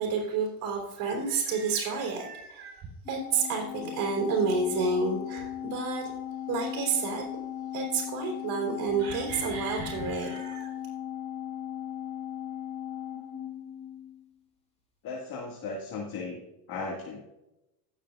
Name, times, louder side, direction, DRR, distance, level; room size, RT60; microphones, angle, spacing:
voice 1, 0.0-2.8 3.1-6.0 6.5-7.3 7.7-10.7, right 4 dB, 45° right, -1 dB, 3.7 m, -30 dB
Organ, 3.1-14.3, left 10 dB, 10° left, 2.5 m, -38 dB
voice 2, 15.0-16.4 16.7-17.2, left 3 dB, 45° left, -1 dB, 2.0 m, -36 dB
16.5 x 6.8 x 2.4 m, 0.94 s
hypercardioid pair, 95°, 48 cm